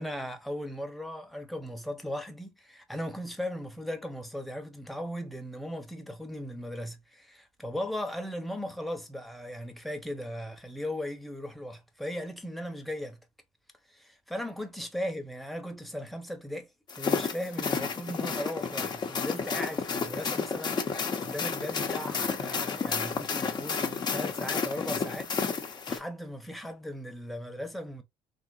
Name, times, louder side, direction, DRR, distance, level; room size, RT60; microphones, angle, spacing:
voice 1, 0.0-13.3 13.9-28.0, equal, ahead, 1.0 m, -38 dB
sound 1, 16.9-26.0, left 5 dB, 40° left, 1.0 m, -31 dB
3.4 x 2.8 x 2.6 m
supercardioid pair, 80°, 11 cm